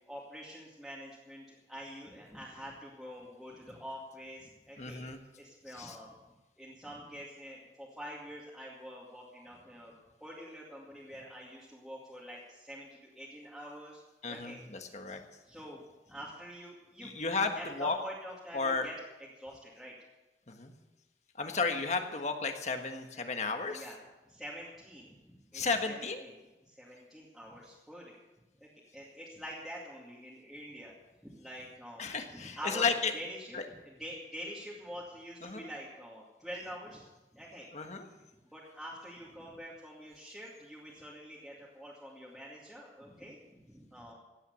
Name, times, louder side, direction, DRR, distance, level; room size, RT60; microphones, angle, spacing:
voice 1, 0.1-5.1 5.4-6.1 6.6-9.9 10.2-14.0 14.3-14.6 15.1-15.2 15.5-17.2 17.5-18.9 19.2-19.9 23.7-24.0 24.2-26.3 26.7-28.2 28.6-31.0 31.2-32.0 32.3-33.6 33.8-37.7 38.2-38.3 38.5-44.1, equal, ahead, -7 dB, 2.3 m, -46 dB
voice 2, 4.8-5.2 5.8-6.0 14.2-15.2 17.0-18.0 18.5-18.9 20.5-20.7 21.4-23.8 25.5-26.2 32.0-33.1 33.5-33.6 35.4-35.7 37.7-38.1, left 4 dB, 40° left, 5 dB, 1.4 m, -33 dB
16.5 x 9.3 x 7.0 m, 1.1 s
head